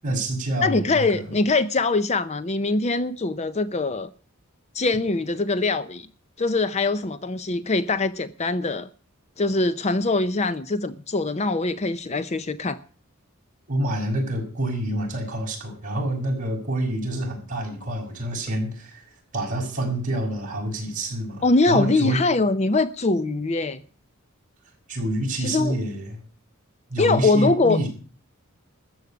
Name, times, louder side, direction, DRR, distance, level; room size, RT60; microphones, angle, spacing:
voice 1, 0.0-1.4 13.7-22.2 24.9-26.2 26.9-27.9, right 1 dB, 35° right, 5.9 m, -27 dB
voice 2, 0.6-4.1 4.7-6.1 6.4-8.9 9.4-12.8 21.4-23.8 25.4-25.8 27.0-27.8, left 3 dB, 30° left, 0.5 m, -23 dB
13.5 x 8.0 x 8.3 m
head